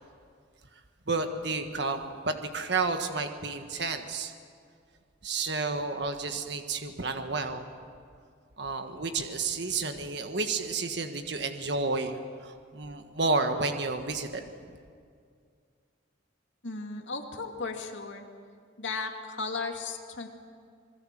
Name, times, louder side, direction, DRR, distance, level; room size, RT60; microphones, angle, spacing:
voice 1, 1.1-4.3 5.2-7.7 8.6-14.4, right 3 dB, 60° right, 6 dB, 1.6 m, -31 dB
voice 2, 16.6-18.2 18.8-20.3, left 4 dB, 70° left, 3 dB, 2.5 m, -35 dB
27.0 x 21.0 x 7.6 m, 2.2 s
head